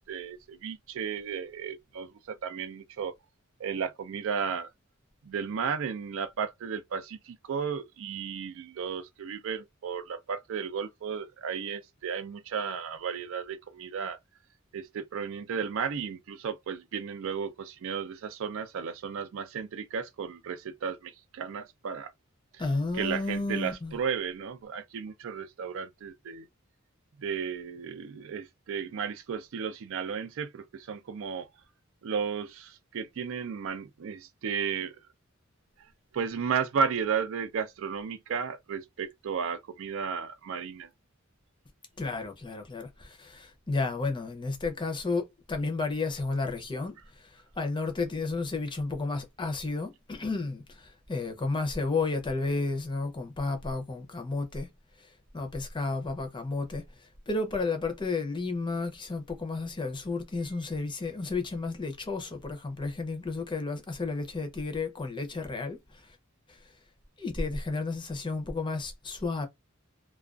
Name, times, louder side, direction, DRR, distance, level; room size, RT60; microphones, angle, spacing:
voice 1, 0.1-3.1 3.6-4.7 5.2-14.2 14.7-22.1 22.9-26.5 27.2-31.5 32.0-35.0 36.1-40.9, right 6 dB, 65° right, 0.4 m, -34 dB
voice 2, 22.6-24.0 42.0-54.7 55.3-66.2 66.5-66.6 67.2-69.5, left 3 dB, 25° left, 0.6 m, -32 dB
2.3 x 2.3 x 2.4 m
head